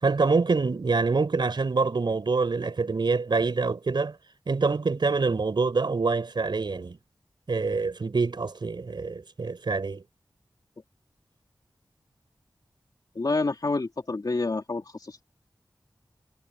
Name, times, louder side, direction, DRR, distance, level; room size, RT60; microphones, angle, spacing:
voice 1, 0.0-4.2 4.5-7.0 7.5-10.0, right 4 dB, 75° right, 4.3 m, -25 dB
voice 2, 13.1-15.2, left 3 dB, 55° left, 2.7 m, -28 dB
wide cardioid pair, 65°, 8 cm